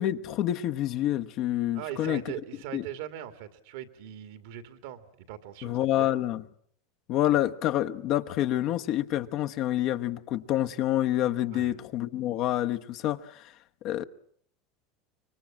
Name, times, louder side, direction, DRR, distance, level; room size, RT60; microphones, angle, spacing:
voice 1, 0.0-2.2 2.7-2.8 5.6-6.4 7.1-13.5 13.8-14.0, left 13 dB, 55° left, 1.1 m, -27 dB
voice 2, 1.7-5.0 5.3-6.2 11.5-11.7, right 11 dB, 75° right, 2.2 m, -40 dB
25.5 x 23.5 x 7.4 m
hypercardioid pair, 95°, 0 cm